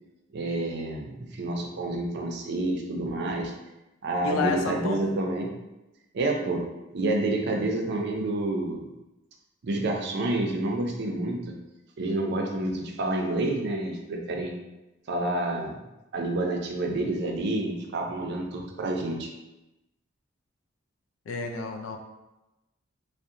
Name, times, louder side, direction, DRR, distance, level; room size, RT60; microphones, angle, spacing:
voice 1, 0.3-3.5 4.0-5.5 6.1-6.6 6.9-8.9 9.6-11.5 12.0-14.5 15.1-15.7 16.1-19.3, right 2 dB, 60° right, 1 dB, 0.4 m, -28 dB
voice 2, 4.2-5.0 21.3-22.0, left 4 dB, 80° left, 3 dB, 0.4 m, -30 dB
2.6 x 2.0 x 2.5 m, 0.99 s
head